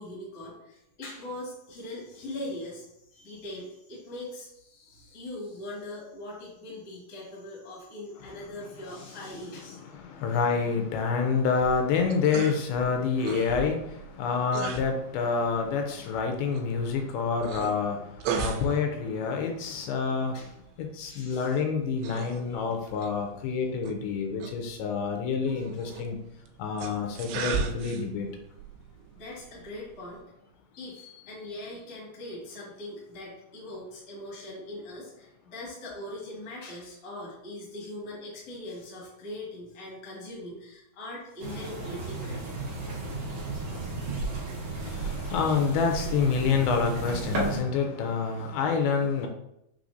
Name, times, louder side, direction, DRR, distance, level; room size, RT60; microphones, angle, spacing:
voice 1, 0.0-9.8 18.7-18.8 20.3-21.6 22.5-22.6 29.1-30.3 30.7-42.7 43.2-44.2 44.7-45.4, left 1 dB, 45° left, -5 dB, 1.2 m, -41 dB
voice 2, 9.7-20.4 20.8-26.2 26.6-28.3 44.8-49.3, left 5 dB, 85° left, 3 dB, 2.4 m, -28 dB
sound 1, 11.5-30.2, right 6 dB, 85° right, 2.5 m, -39 dB
sound 2, 41.4-47.6, right 3 dB, 55° right, 2.2 m, -34 dB
6.2 x 3.2 x 2.6 m, 0.81 s
omnidirectional pair, 4.5 m